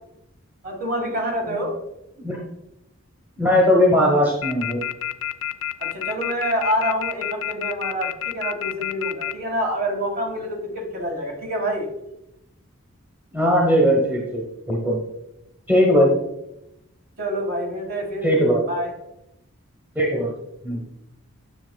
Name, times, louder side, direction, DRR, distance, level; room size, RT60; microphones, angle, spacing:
voice 1, 0.6-1.7 5.8-11.9 17.2-18.3 18.7-18.9, equal, 40° right, 1 dB, 1.5 m, -27 dB
voice 2, 3.4-4.8 13.3-15.0 15.7-16.1 18.2-18.6 19.9-20.3 20.6-20.8, equal, 10° right, -2 dB, 1.0 m, -19 dB
sound 1, 4.4-9.3, left 12 dB, 65° left, 0.4 m, -27 dB
9.6 x 6.3 x 2.3 m, 0.86 s
head